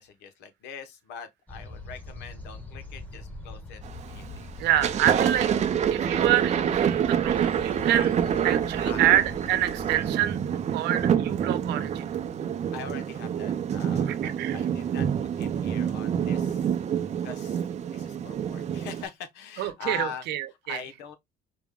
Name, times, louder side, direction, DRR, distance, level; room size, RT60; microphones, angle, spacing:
voice 1, 0.0-4.5 8.8-9.0 12.7-16.8 17.2-17.6 17.9-20.3 20.7-21.2, left 6 dB, 90° left, 0.9 m, -42 dB
sound 1, 1.5-10.1, left 2 dB, 10° left, 1.1 m, -42 dB
Thunder, 3.8-4.2 4.6-19.0, right 8 dB, 40° right, 0.6 m, -27 dB
voice 2, 4.6-5.5 5.9-8.1 8.4-10.4 10.7-12.0 14.1-14.6 19.6-20.8, right 12 dB, 80° right, 0.9 m, -27 dB
5.0 x 2.2 x 3.6 m
cardioid pair, 110°, 17 cm